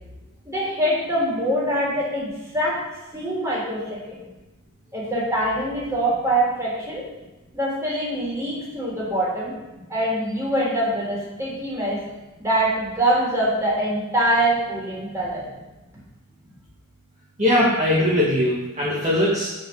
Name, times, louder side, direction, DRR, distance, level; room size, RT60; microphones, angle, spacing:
voice 1, 0.5-2.8 3.1-4.2 4.9-7.0 7.5-9.5 9.9-12.0 12.4-15.5, right 1 dB, 15° right, -6 dB, 3.8 m, -24 dB
voice 2, 17.4-19.5, left 1 dB, 30° right, -8 dB, 2.0 m, -20 dB
8.9 x 6.5 x 6.6 m, 1.1 s
head